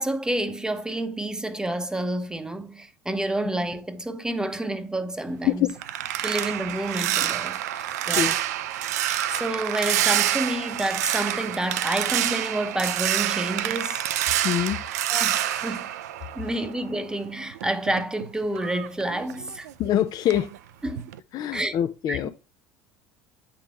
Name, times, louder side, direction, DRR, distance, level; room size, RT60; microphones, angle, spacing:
voice 1, 0.0-5.7 6.2-8.4 9.1-14.0 15.1-15.9 16.3-19.7 20.8-21.1 21.5-21.7 22.1-22.3, right 1 dB, 10° right, 0.8 m, -29 dB
sound 1, 5.3-16.9 17.3-19.9 20.3-20.6 21.0-21.2, right 12 dB, 85° right, 0.4 m, -27 dB
voice 2, 14.4-14.8 19.8-20.5 21.3-22.3, left 11 dB, 50° left, 0.5 m, -24 dB
8.5 x 3.7 x 3.1 m
hypercardioid pair, 85°, 8 cm